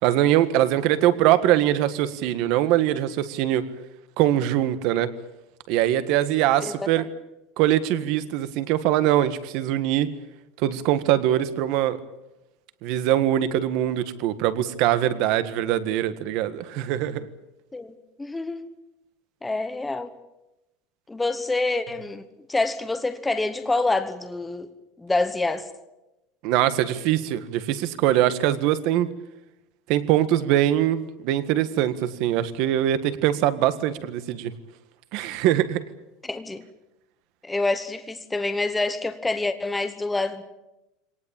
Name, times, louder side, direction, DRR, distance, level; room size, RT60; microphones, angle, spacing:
voice 1, 0.0-3.6 4.2-5.1 5.7-7.1 7.6-10.1 10.6-12.0 12.8-17.3 26.4-29.1 29.9-34.5 35.1-35.8, right 12 dB, 45° right, 13 dB, 1.6 m, -22 dB
voice 2, 6.6-6.9 17.7-18.7 19.4-20.1 21.1-24.7 25.0-25.7 36.2-36.6 37.4-40.4, left 2 dB, 5° left, 9 dB, 1.0 m, -27 dB
24.5 x 19.0 x 9.0 m, 0.94 s
supercardioid pair, 175°, 0 cm